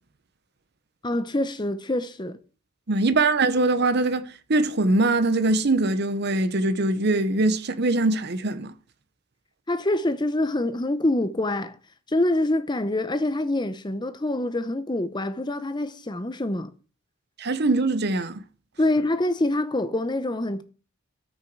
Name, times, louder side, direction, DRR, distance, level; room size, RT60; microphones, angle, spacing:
voice 1, 1.0-2.4 9.7-11.8 12.1-16.7 18.8-20.6, left 1 dB, 20° left, 0.8 m, -25 dB
voice 2, 2.9-8.7 17.4-18.4, right 2 dB, 50° right, 0.8 m, -22 dB
13.0 x 5.8 x 4.7 m
head